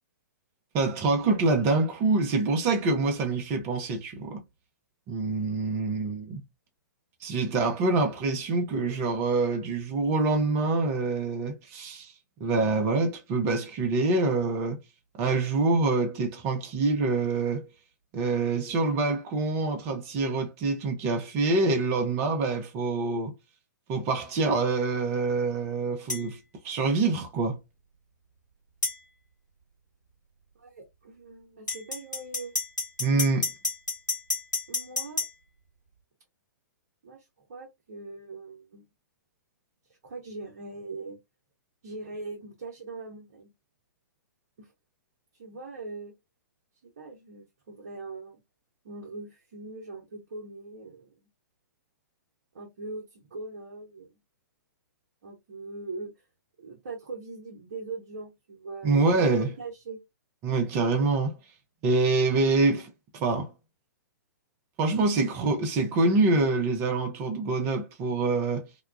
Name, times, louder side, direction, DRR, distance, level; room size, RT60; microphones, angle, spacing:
voice 1, 0.7-4.4 5.1-6.4 7.2-12.1 12.4-14.8 15.2-17.7 18.1-23.3 23.9-26.4 26.6-27.6 33.0-33.5 58.8-59.5 60.4-61.4 61.8-63.5 64.8-68.7, right 3 dB, 30° right, 0.7 m, -26 dB
voice 2, 7.6-8.0 8.4-9.1 30.5-32.5 34.7-35.2 37.0-38.8 39.9-41.2 41.8-43.5 44.6-44.7 45.3-46.1 46.8-48.4 48.8-51.1 52.5-54.2 55.2-56.1 56.6-60.0, right 3 dB, 55° right, 0.9 m, -41 dB
sound 1, 26.1-26.3 28.8-29.0 31.7-35.3, left 3 dB, 85° left, 1.3 m, -30 dB
2.9 x 2.2 x 2.3 m
figure-of-eight pair, 115°, 10 cm